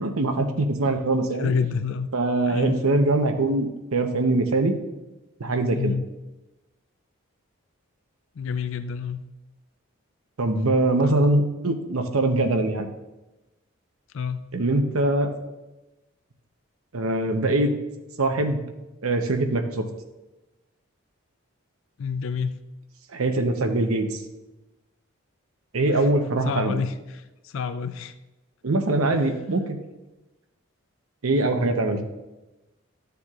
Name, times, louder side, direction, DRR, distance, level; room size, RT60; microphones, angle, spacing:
voice 1, 0.0-1.5 2.1-4.7 5.4-5.9 10.4-12.9 14.5-15.3 16.9-17.8 18.2-18.6 19.0-19.8 23.1-24.2 25.7-26.8 28.6-29.8 31.2-32.0, right 2 dB, 85° right, 6 dB, 0.8 m, -23 dB
voice 2, 1.4-2.1 2.4-2.8 5.7-6.1 8.4-9.2 11.0-11.3 14.1-14.5 22.0-22.6 25.9-26.1 26.4-28.1, left 6 dB, 65° left, 11 dB, 0.4 m, -28 dB
13.0 x 6.9 x 2.4 m, 1.1 s
head